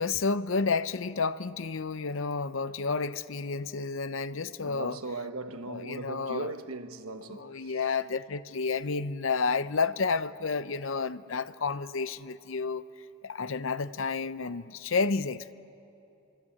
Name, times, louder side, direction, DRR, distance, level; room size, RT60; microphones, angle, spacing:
voice 1, 0.0-5.0 5.7-6.5 7.3-12.9 13.2-15.5, left 4 dB, 65° left, 0.6 m, -30 dB
voice 2, 4.6-7.9, right 3 dB, 90° right, 1.2 m, -39 dB
26.5 x 24.5 x 8.6 m
head